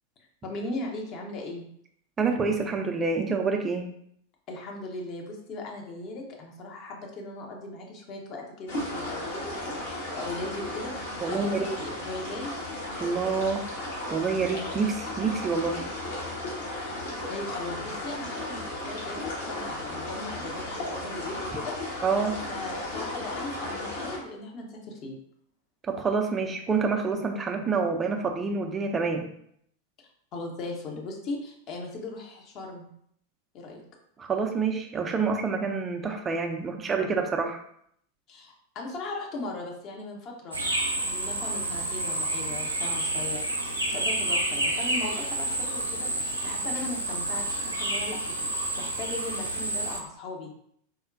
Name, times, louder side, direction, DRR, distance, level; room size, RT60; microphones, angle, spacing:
voice 1, 0.4-1.7 4.5-12.5 17.0-22.0 22.5-25.1 30.3-32.9 33.5-33.8 38.3-40.6 41.0-43.4 43.9-48.2 48.8-50.5, left 2 dB, 35° left, 0 dB, 0.7 m, -38 dB
voice 2, 2.2-3.9 11.2-11.7 13.0-13.6 14.1-15.9 22.0-22.4 25.9-29.3 34.2-37.6, right 4 dB, 20° right, 4 dB, 0.4 m, -27 dB
sound 1, 8.7-24.2, left 1 dB, 60° left, 1.0 m, -35 dB
sound 2, 40.5-50.0, right 1 dB, 85° right, 0.5 m, -29 dB
4.2 x 2.1 x 2.5 m, 0.69 s
figure-of-eight pair, 90°, 0 cm